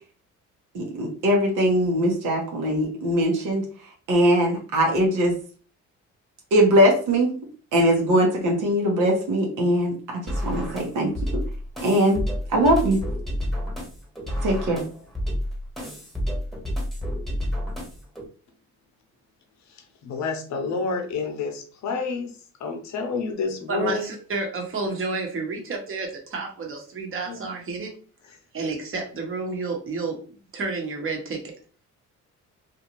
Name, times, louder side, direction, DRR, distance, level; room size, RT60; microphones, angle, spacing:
voice 1, 0.7-3.6 4.1-5.3 6.5-7.3 7.7-9.9 10.4-11.1 11.8-12.2 12.5-13.0 14.4-14.8, equal, 85° right, 0 dB, 1.0 m, -21 dB
sound 1, 10.3-18.3, equal, ahead, 1.0 m, -30 dB
voice 2, 19.7-22.3 22.6-24.1 27.3-27.4 28.3-28.4, left 4 dB, 65° left, 5 dB, 0.7 m, -29 dB
voice 3, 23.7-27.9 28.5-31.4, right 3 dB, 45° right, 1 dB, 1.0 m, -30 dB
2.6 x 2.4 x 2.9 m, 0.40 s
cardioid pair, 90°, 30 cm